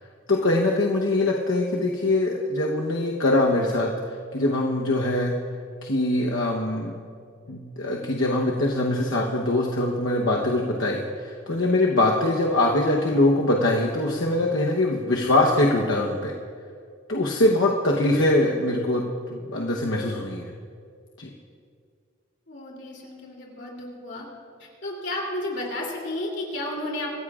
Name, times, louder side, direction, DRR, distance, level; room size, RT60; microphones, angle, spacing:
voice 1, 0.3-3.9 4.3-5.4 5.8-6.9 7.5-16.3 17.1-19.0 19.3-20.5 21.2-21.3, left 2 dB, 75° left, -1 dB, 1.0 m, -23 dB
voice 2, 22.5-24.3 24.6-27.1, left 1 dB, 55° left, -1 dB, 3.0 m, -32 dB
24.5 x 14.5 x 2.5 m, 2.2 s
head